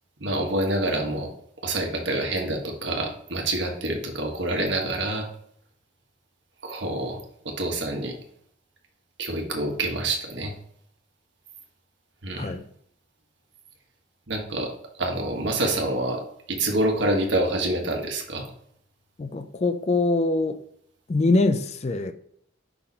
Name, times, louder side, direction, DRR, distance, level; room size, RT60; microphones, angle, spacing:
voice 1, 0.2-1.3 1.6-5.3 6.6-7.2 7.4-8.1 9.2-10.5 12.2-12.5 14.3-14.7 15.0-16.2 16.5-18.5, right 1 dB, 75° right, 1.4 m, -27 dB
voice 2, 19.2-20.6 21.1-22.1, left 2 dB, 35° left, 0.4 m, -23 dB
5.7 x 4.2 x 4.2 m
head